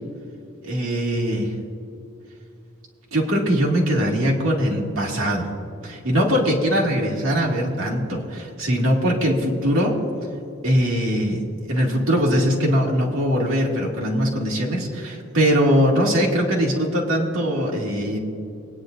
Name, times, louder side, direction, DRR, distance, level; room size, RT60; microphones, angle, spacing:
voice 1, 0.6-1.5 3.1-5.5 5.8-10.0 10.6-11.4 11.7-18.2, equal, 80° right, -2 dB, 2.4 m, -21 dB
24.0 x 9.7 x 2.6 m, 2.7 s
head